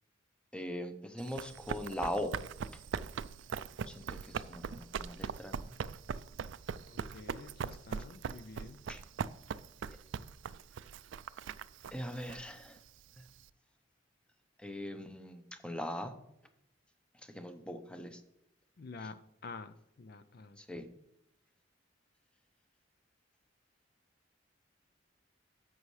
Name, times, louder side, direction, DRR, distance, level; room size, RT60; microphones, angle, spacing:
voice 1, 0.5-2.3 3.9-4.2 4.4-5.7 8.9-9.0 11.9-12.8 14.6-16.1 17.3-18.2 20.6-20.8, left 1 dB, 5° left, 8 dB, 0.7 m, -40 dB
Run, 1.2-13.5, right 6 dB, 70° right, 0.4 m, -41 dB
voice 2, 6.9-8.8 18.8-19.2 19.4-20.6, left 3 dB, 50° left, 11 dB, 0.4 m, -48 dB
10.5 x 7.6 x 3.2 m, 0.80 s
head